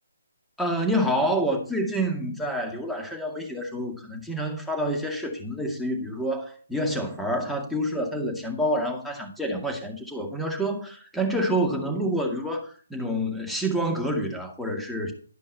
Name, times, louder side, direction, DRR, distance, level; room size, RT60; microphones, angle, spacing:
voice 1, 0.6-15.1, equal, ahead, 2.1 m, -28 dB
12.5 x 5.3 x 5.6 m
figure-of-eight pair, 145°, 0 cm